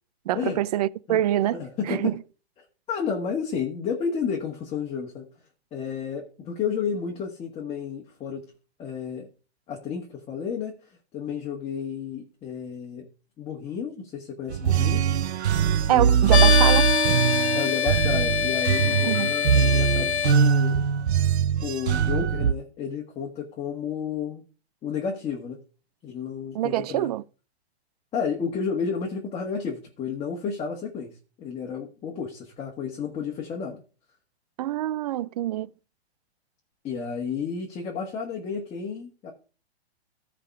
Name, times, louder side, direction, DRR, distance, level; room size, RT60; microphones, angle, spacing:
voice 1, 0.3-1.6 1.9-2.1 15.9-16.9 19.0-19.3 26.5-27.2 34.6-35.7, right 13 dB, 40° right, 0.4 m, -25 dB
voice 2, 1.5-2.1 2.9-5.3 5.7-8.4 8.8-9.3 9.7-10.7 11.1-13.1 13.4-15.0 15.9-16.4 17.5-20.8 21.6-24.4 24.8-25.6 26.0-27.1 28.1-31.1 31.4-33.8 36.8-39.3, left 6 dB, 20° left, 1.7 m, -31 dB
sound 1, 14.5-22.5, right 7 dB, 85° right, 0.7 m, -22 dB
sound 2, 16.3-20.3, left 8 dB, 85° left, 0.9 m, -24 dB
14.5 x 5.0 x 4.7 m
hypercardioid pair, 130°, 33 cm